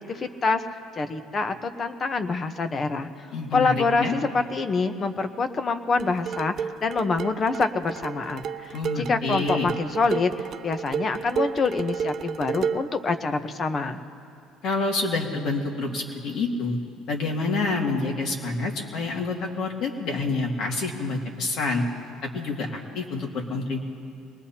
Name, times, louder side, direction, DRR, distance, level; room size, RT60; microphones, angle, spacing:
voice 1, 0.1-0.6 1.0-3.1 3.5-10.3 10.6-14.0, left 4 dB, 40° left, 9 dB, 1.0 m, -26 dB
voice 2, 3.3-4.1 8.7-9.7 14.6-16.8 17.1-21.8 22.3-23.8, left 3 dB, 65° left, 0 dB, 2.3 m, -27 dB
sound 1, 6.0-13.0, right 6 dB, 55° right, 0.4 m, -32 dB
23.0 x 19.5 x 2.9 m, 2.5 s
supercardioid pair, 85°, 0 cm